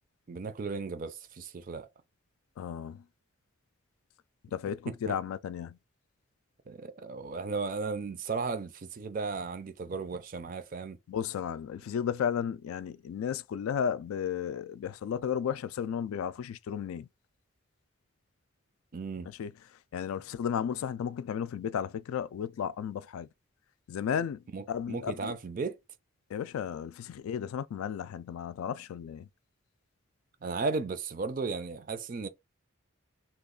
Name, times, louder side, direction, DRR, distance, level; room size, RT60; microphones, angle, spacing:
voice 1, 0.3-1.9 4.9-5.2 6.7-11.0 18.9-19.3 24.5-25.8 30.4-32.3, right 4 dB, 40° right, 0.4 m, -35 dB
voice 2, 2.6-3.0 4.5-5.8 11.1-17.1 19.4-19.5 19.9-23.3 23.9-24.4 24.7-25.3 26.3-29.3, left 8 dB, 85° left, 0.3 m, -34 dB
3.0 x 2.3 x 3.7 m
head